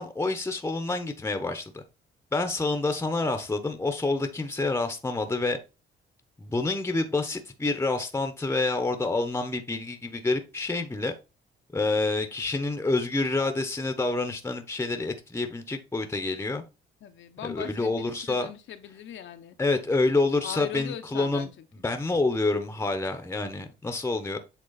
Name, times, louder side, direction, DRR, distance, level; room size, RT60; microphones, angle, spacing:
voice 1, 0.0-1.8 2.3-5.6 6.4-11.1 11.7-16.6 17.4-18.5 19.6-21.5 21.8-24.4, left 3 dB, 10° left, 1.0 m, -28 dB
voice 2, 17.0-19.6 20.4-21.6, left 9 dB, 70° left, 1.0 m, -40 dB
8.1 x 3.2 x 4.1 m
cardioid pair, 90°, 20 cm